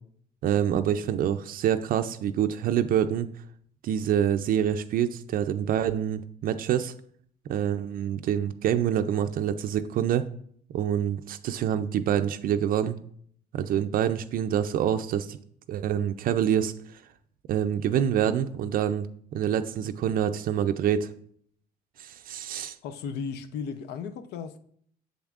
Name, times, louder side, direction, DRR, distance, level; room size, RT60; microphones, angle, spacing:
voice 1, 0.4-3.3 3.8-6.9 7.5-10.3 10.7-13.0 13.5-15.4 15.7-17.0 17.5-19.1 19.3-21.1 22.0-22.8, right 9 dB, 60° right, 0.4 m, -26 dB
voice 2, 22.8-24.6, left 6 dB, 80° left, 0.6 m, -35 dB
7.2 x 7.1 x 2.4 m
cardioid pair, 110°, 17 cm